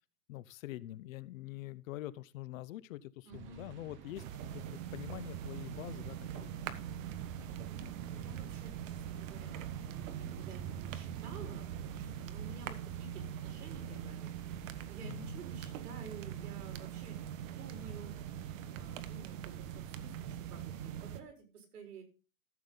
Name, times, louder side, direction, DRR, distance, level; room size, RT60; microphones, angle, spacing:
voice 1, 0.3-7.0 13.9-14.1 15.0-15.4, left 16 dB, 60° left, 19 dB, 0.7 m, -46 dB
sound 1, 3.3-12.3, right 7 dB, 25° right, 1.0 m, -50 dB
voice 2, 3.3-3.6 7.3-22.0, right 5 dB, 75° right, 4 dB, 4.6 m, -52 dB
sound 2, 4.2-21.2, right 10 dB, 55° right, 1.2 m, -42 dB
14.0 x 7.3 x 3.9 m, 0.35 s
supercardioid pair, 155°, 46 cm